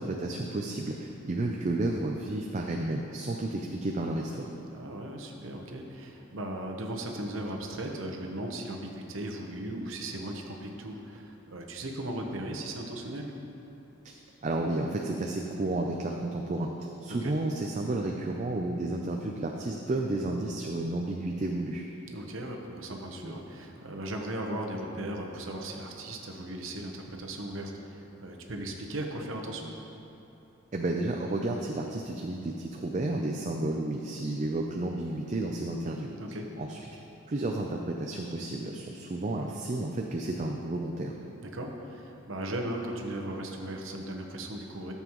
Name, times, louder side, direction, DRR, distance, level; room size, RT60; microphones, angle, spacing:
voice 1, 0.0-4.5 14.0-14.1 14.4-16.7 17.0-21.8 30.7-36.1 36.6-36.8 37.3-41.1, right 2 dB, 35° right, 1 dB, 0.4 m, -32 dB
voice 2, 4.7-13.3 17.1-17.3 22.1-29.7 36.2-36.5 41.5-44.9, right 1 dB, 75° right, 2 dB, 1.0 m, -37 dB
13.0 x 7.1 x 3.0 m, 2.9 s
head